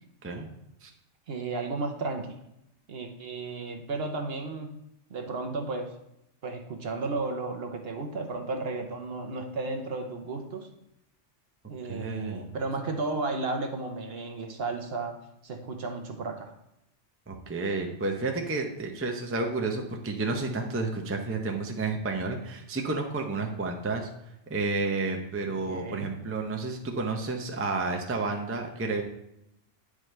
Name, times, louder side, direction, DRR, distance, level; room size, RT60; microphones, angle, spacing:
voice 1, 1.3-2.4 2.9-4.8 5.1-5.9 6.4-10.7 11.7-15.2 15.4-16.5 25.4-26.1, right 3 dB, 55° right, 4 dB, 1.0 m, -33 dB
voice 2, 11.9-12.4 17.3-24.1 24.5-29.0, right 3 dB, 15° right, 2 dB, 0.5 m, -31 dB
9.0 x 5.0 x 3.2 m, 0.81 s
omnidirectional pair, 1.3 m